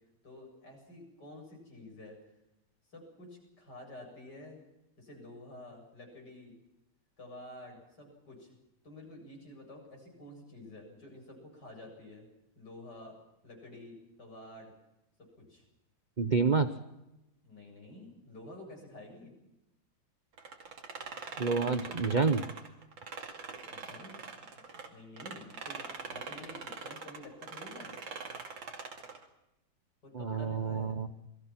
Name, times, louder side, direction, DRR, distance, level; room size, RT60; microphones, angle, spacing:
voice 1, 0.2-2.2 2.9-4.6 5.0-6.6 7.2-8.6 8.8-12.3 12.5-13.2 13.4-14.7 15.4-15.6 17.4-19.3 23.4-28.0 30.0-31.0, left 1 dB, 50° left, 1 dB, 8.3 m, -50 dB
voice 2, 16.2-16.7 21.4-22.4 30.1-31.1, right 4 dB, 45° right, 10 dB, 0.6 m, -28 dB
sound 1, 20.4-24.9 25.2-29.2, right 4 dB, 65° right, 3.1 m, -43 dB
28.5 x 21.0 x 6.1 m, 0.91 s
omnidirectional pair, 2.4 m